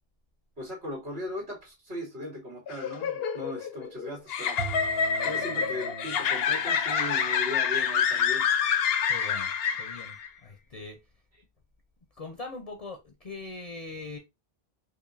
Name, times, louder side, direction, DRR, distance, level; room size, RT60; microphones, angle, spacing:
voice 1, 0.6-4.6 5.2-8.5 11.3-11.4, left 1 dB, 85° right, 2.2 m, -38 dB
sound 1, 2.7-10.3, left 7 dB, 75° left, 0.8 m, -27 dB
Bowed string instrument, 4.6-8.8, right 6 dB, 55° right, 0.5 m, -44 dB
voice 2, 9.1-9.5 9.8-11.0 12.2-14.2, left 3 dB, 45° left, 0.6 m, -41 dB
4.8 x 2.6 x 2.5 m
omnidirectional pair, 1.0 m